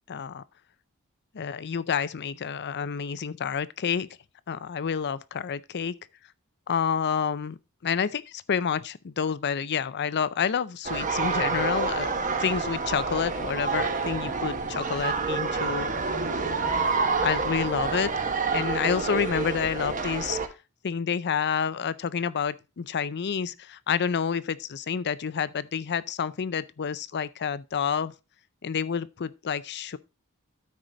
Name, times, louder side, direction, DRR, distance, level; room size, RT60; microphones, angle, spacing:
voice 1, 0.1-0.4 1.3-4.1 4.5-5.9 6.7-7.6 7.8-12.1 12.4-15.9 16.6-18.2 18.5-20.4 20.8-28.1 28.6-30.0, left 7 dB, 50° left, 0.5 m, -29 dB
sound 1, 10.8-20.5, right 4 dB, 35° right, 1.1 m, -28 dB
13.0 x 4.9 x 3.8 m
head